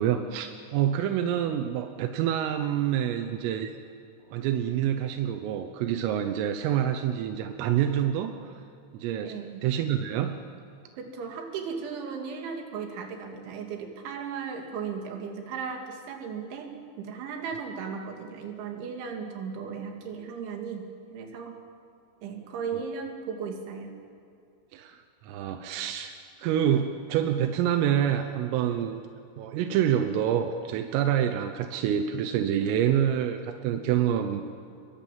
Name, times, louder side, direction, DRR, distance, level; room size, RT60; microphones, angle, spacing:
voice 1, 0.0-3.7 4.3-8.6 8.9-9.4 9.6-10.4 24.7-29.0 29.4-34.4, right 10 dB, 90° right, 7 dB, 3.7 m, -27 dB
voice 2, 9.2-9.6 10.9-21.6 22.2-23.9, right 6 dB, 70° right, 3 dB, 4.6 m, -36 dB
27.0 x 22.5 x 7.5 m, 2.6 s
omnidirectional pair, 5.7 m